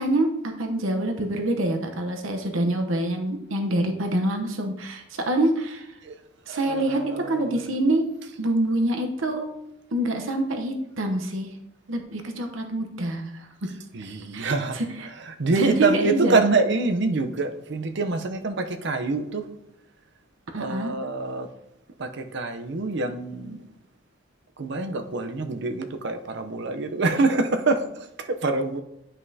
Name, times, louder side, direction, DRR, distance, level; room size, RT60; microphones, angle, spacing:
voice 1, 0.0-5.9 6.5-8.1 8.4-9.5 9.9-11.6 11.9-13.5 14.3-15.1 15.6-16.4 20.5-20.9, right 1 dB, 85° right, 0.9 m, -26 dB
voice 2, 6.5-7.7 8.2-8.3 13.9-19.5 20.6-21.5 22.0-23.6 24.6-27.8 28.2-28.8, right 3 dB, 60° right, 0.7 m, -26 dB
9.7 x 5.4 x 2.7 m
head